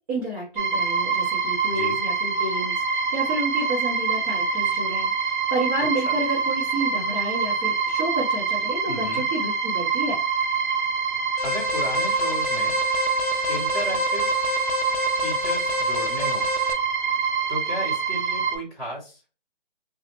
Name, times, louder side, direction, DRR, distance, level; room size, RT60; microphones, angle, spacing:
voice 1, 0.1-10.2, right 1 dB, 25° right, -7 dB, 1.0 m, -30 dB
sound 1, 0.6-18.6, right 5 dB, 55° right, 0.7 m, -25 dB
voice 2, 8.8-9.2 11.4-12.8 13.5-14.3 15.2-16.5 17.5-19.2, equal, ahead, -12 dB, 0.9 m, -34 dB
Alarm, 11.4-16.7, left 6 dB, 40° left, 0.5 m, -30 dB
2.8 x 2.4 x 2.9 m, 0.34 s
figure-of-eight pair, 150°, 29 cm